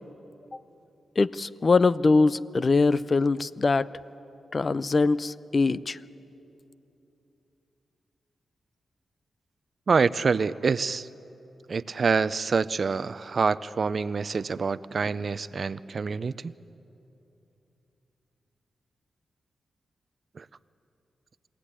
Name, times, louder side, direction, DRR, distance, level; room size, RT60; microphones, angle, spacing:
voice 1, 1.2-3.9 4.5-6.0, left 3 dB, 45° left, 17 dB, 0.5 m, -22 dB
voice 2, 9.9-11.1 11.7-16.5 20.4-20.5, right 5 dB, 55° right, 17 dB, 0.5 m, -26 dB
23.5 x 16.5 x 9.9 m, 3.0 s
cardioid pair, 65°, 0 cm